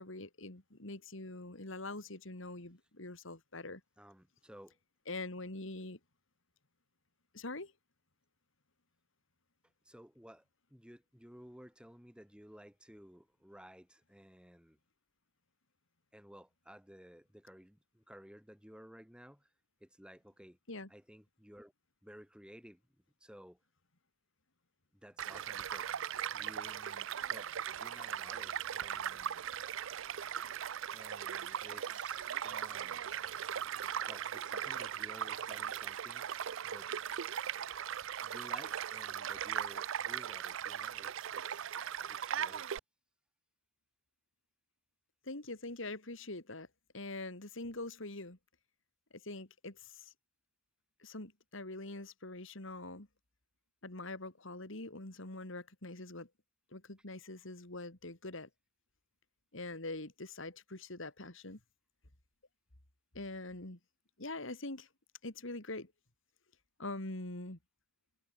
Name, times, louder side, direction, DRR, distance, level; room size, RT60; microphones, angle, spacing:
voice 1, 0.0-3.8 5.1-6.0 7.3-7.7 20.7-20.9 45.2-46.7 46.9-48.4 49.1-50.1 51.0-53.1 53.8-56.3 56.7-58.5 59.5-61.6 63.1-63.8 64.2-64.9 65.2-65.9 66.8-67.6, left 2 dB, 65° left, 3.3 m, -44 dB
voice 2, 4.0-4.8 9.8-10.4 10.7-14.8 16.1-19.5 19.8-20.6 20.9-21.7 22.0-22.8 23.2-23.6 25.0-25.9 26.3-29.5 30.8-33.0 34.1-36.3 36.6-36.9 38.2-41.7 42.1-42.7, equal, 5° right, 7.6 m, -55 dB
Child speech kid speaking / Stream / Car passing by, 25.2-42.8, right 9 dB, 65° right, 0.5 m, -39 dB
head